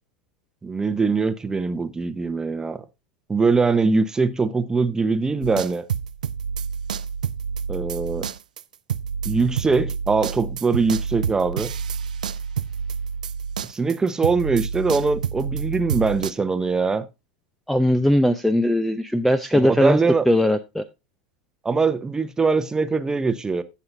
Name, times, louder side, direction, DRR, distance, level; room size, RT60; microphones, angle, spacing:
voice 1, 0.6-2.8 3.3-5.8 7.7-8.3 9.2-11.7 13.7-17.1 19.5-20.2 21.6-23.6, right 4 dB, 15° right, 0.9 m, -22 dB
sound 1, 5.4-14.0 14.2-16.3, right 7 dB, 90° right, 0.4 m, -29 dB
voice 2, 17.7-20.0 20.3-20.8, left 1 dB, 5° left, 0.6 m, -19 dB
17.0 x 5.7 x 2.6 m
hypercardioid pair, 100°, 4 cm